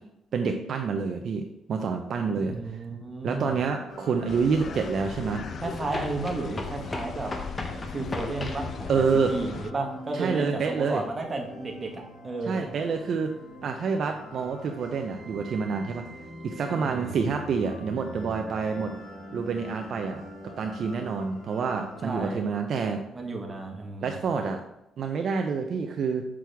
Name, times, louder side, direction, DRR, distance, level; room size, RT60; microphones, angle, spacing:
voice 1, 0.3-1.4 1.7-2.5 3.2-5.4 8.9-9.3 10.1-11.0 12.5-13.3 13.6-16.0 16.4-18.9 19.3-20.2 20.6-23.0 24.0-24.6 25.0-26.3, right 5 dB, 60° right, 4 dB, 0.6 m, -27 dB
voice 2, 2.3-3.6 5.6-7.3 7.8-12.7 16.7-17.1 22.0-22.4 23.1-24.2, right 3 dB, 30° right, 2 dB, 1.4 m, -33 dB
sound 1, 3.5-3.6 5.9-8.7, left 2 dB, 30° left, 1.0 m, -36 dB
sound 2, 3.9-22.2, equal, 75° left, 2.6 m, -44 dB
sound 3, 4.3-9.7, left 6 dB, 50° left, 0.4 m, -39 dB
6.2 x 6.0 x 3.5 m, 0.86 s
cardioid pair, 90°, 0 cm